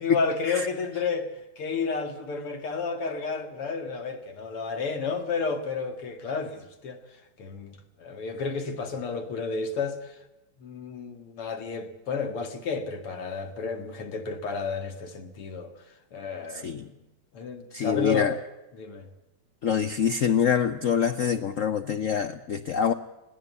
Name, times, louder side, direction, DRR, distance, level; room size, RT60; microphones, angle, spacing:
voice 1, 0.0-7.0 7.4-10.2 10.6-15.7 16.1-17.1 17.3-18.4 18.7-19.1, left 5 dB, 90° left, 2.9 m, -31 dB
voice 2, 16.5-16.9 17.7-18.3 19.6-22.9, left 7 dB, 60° left, 0.8 m, -25 dB
21.5 x 15.5 x 8.3 m
omnidirectional pair, 2.4 m